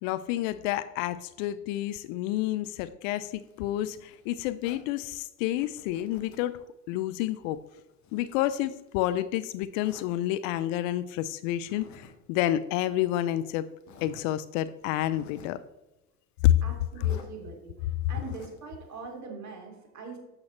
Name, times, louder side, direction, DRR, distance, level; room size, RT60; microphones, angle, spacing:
voice 1, 0.0-7.6 8.1-13.7 14.0-15.6 16.4-16.5, left 13 dB, 55° left, 14 dB, 0.5 m, -29 dB
Zipper (clothing), 3.2-4.9 5.5-6.6 7.0-9.2 9.8-10.1 11.5-12.1 12.4-12.5 13.2-13.3 13.8-14.3 14.8-15.6 16.9-17.3 18.0-18.6, left 5 dB, 35° left, 1.4 m, -51 dB
voice 2, 16.6-20.2, right 4 dB, 35° right, 1 dB, 2.5 m, -42 dB
8.7 x 6.9 x 3.1 m, 1.0 s
hypercardioid pair, 85°, 47 cm